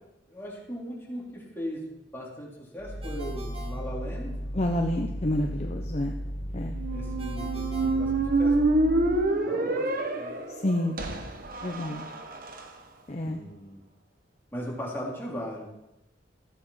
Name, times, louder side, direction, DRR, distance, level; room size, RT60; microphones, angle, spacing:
voice 1, 0.3-4.3 6.9-8.7 9.2-10.4 13.2-13.8 14.5-15.7, equal, 15° left, -5 dB, 3.9 m, -38 dB
sound 1, 2.8-9.4, equal, 80° left, 2.8 m, -35 dB
Ringtone, 3.0-4.7 7.2-8.9, right 1 dB, 35° right, 1.8 m, -46 dB
voice 2, 4.5-6.1 6.5-6.8 10.6-11.0 11.6-12.1 13.1-13.4, left 1 dB, 35° left, 2 dB, 0.9 m, -28 dB
Squeak, 6.7-12.6, right 2 dB, 50° right, 1.3 m, -27 dB
15.0 x 8.4 x 5.8 m, 0.93 s
head